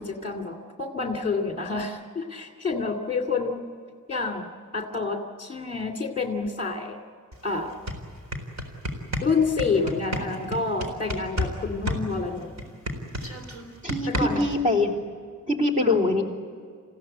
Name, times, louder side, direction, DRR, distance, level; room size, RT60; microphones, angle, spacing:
voice 1, 0.0-3.6 4.1-4.5 4.7-7.0 7.4-7.7 9.2-12.5 14.1-14.5 15.8-16.0, left 4 dB, 25° left, 2 dB, 2.3 m, -28 dB
sound 1, 7.3-7.4 7.7-11.6 11.9-14.6, equal, 55° right, 4.0 m, -30 dB
voice 2, 13.8-14.9 15.5-16.2, left 2 dB, 25° right, 1 dB, 3.4 m, -23 dB
29.0 x 16.0 x 9.8 m, 2.2 s
wide cardioid pair, 145°, 32 cm